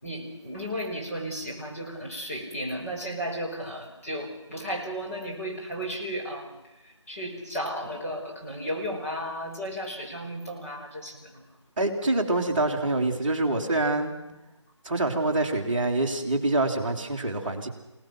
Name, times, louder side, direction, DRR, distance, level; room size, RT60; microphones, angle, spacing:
voice 1, 0.0-11.5, equal, 30° left, -3 dB, 5.2 m, -34 dB
voice 2, 11.8-14.1 14.8-17.7, right 2 dB, 20° right, -5 dB, 2.6 m, -25 dB
28.5 x 18.5 x 6.0 m, 0.97 s
figure-of-eight pair, 175°, 16 cm